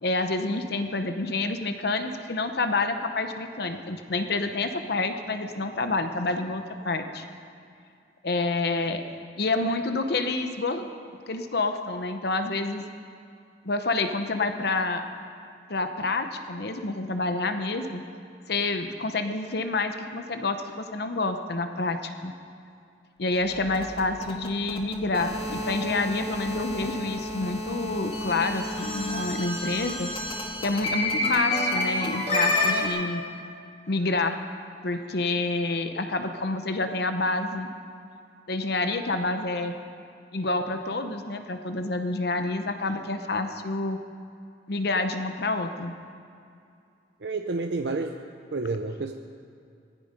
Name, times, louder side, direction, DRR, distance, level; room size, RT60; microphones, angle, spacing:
voice 1, 0.0-7.2 8.2-9.0 9.4-10.8 11.3-12.8 13.6-15.0 15.7-18.0 18.5-22.3 23.2-30.1 30.6-33.2 33.9-34.4 34.8-37.7 38.5-39.7 40.3-44.0 44.7-45.9, left 3 dB, 65° left, 7 dB, 0.9 m, -28 dB
sound 1, 23.3-32.9, left 1 dB, 30° left, 2.0 m, -29 dB
voice 2, 47.2-48.1 48.5-49.1, right 3 dB, 70° right, 4 dB, 0.7 m, -29 dB
19.5 x 14.0 x 5.2 m, 2.4 s
head